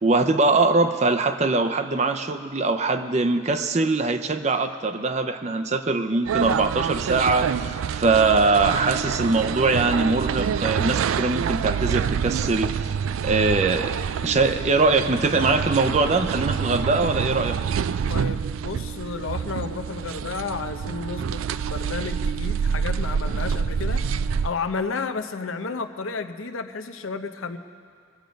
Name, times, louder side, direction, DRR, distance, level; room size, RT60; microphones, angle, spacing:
voice 1, 0.0-12.9 13.2-13.9 14.2-17.6, right 3 dB, 35° right, 8 dB, 0.6 m, -22 dB
sound 1, 6.2-24.5, right 7 dB, 85° right, 0.3 m, -27 dB
voice 2, 18.1-24.2 24.4-27.6, left 4 dB, 85° left, 8 dB, 0.7 m, -32 dB
22.5 x 8.1 x 5.2 m, 2.1 s
head